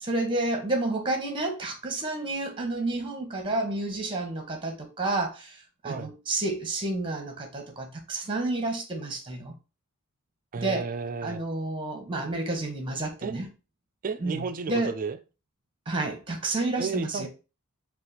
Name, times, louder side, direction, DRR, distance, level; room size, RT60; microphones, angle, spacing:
voice 1, 0.0-9.5 10.6-10.9 11.2-13.5 14.2-14.9 15.9-17.3, right 2 dB, 20° right, 1.0 m, -30 dB
voice 2, 10.5-11.4 13.2-13.3 14.0-15.2 16.8-17.3, right 5 dB, 40° right, 0.4 m, -32 dB
4.1 x 2.4 x 3.9 m
head